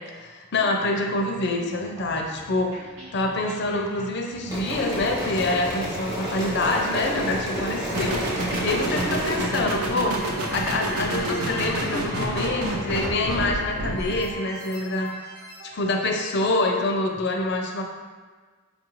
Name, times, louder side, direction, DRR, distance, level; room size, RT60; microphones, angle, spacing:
voice 1, 0.1-2.9 3.1-10.2 10.5-15.1 15.6-17.8, left 2 dB, 50° left, 2 dB, 0.4 m, -26 dB
sound 1, 1.1-15.8, left 1 dB, 65° right, 1.0 m, -44 dB
sound 2, 4.5-9.5, equal, 15° right, 0.8 m, -30 dB
sound 3, 7.9-14.3, right 1 dB, 80° right, 0.6 m, -28 dB
5.0 x 2.5 x 3.0 m, 1.4 s
head